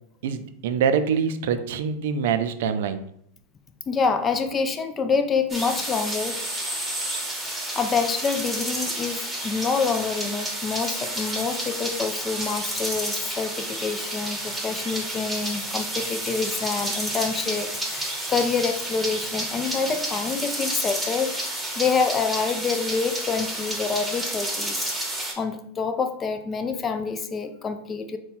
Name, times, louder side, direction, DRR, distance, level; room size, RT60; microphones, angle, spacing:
voice 1, 0.2-3.1, right 7 dB, 75° right, 9 dB, 0.4 m, -25 dB
voice 2, 3.9-6.4 7.7-21.4 21.8-24.9 25.4-28.2, left 5 dB, 25° left, 8 dB, 0.5 m, -27 dB
sound 1, 5.5-25.3, right 1 dB, 5° right, 1.2 m, -30 dB
3.9 x 2.3 x 4.2 m, 0.71 s
hypercardioid pair, 110°, 0 cm